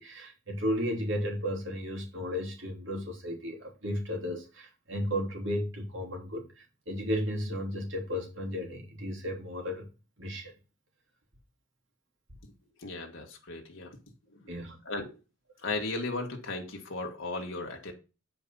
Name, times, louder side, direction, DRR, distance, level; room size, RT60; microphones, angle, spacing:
voice 1, 0.0-9.9 10.2-10.5 14.5-14.8, equal, 75° right, 3.0 m, -34 dB
voice 2, 12.8-13.9 14.3-14.4 14.8-15.2 15.6-17.9, left 3 dB, 75° left, 1.7 m, -36 dB
8.4 x 5.2 x 5.4 m
head